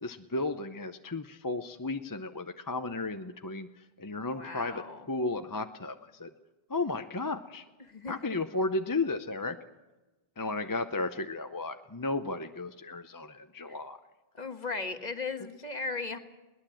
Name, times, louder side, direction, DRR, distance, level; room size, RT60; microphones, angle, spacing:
voice 1, 0.0-6.3 6.7-7.6 8.1-9.6 10.4-14.0, left 3 dB, 20° left, 8 dB, 0.6 m, -34 dB
voice 2, 4.3-5.0 7.8-8.1 14.3-16.2, left 4 dB, 40° left, 7 dB, 1.5 m, -37 dB
21.5 x 19.0 x 7.7 m, 1.1 s
omnidirectional pair, 1.1 m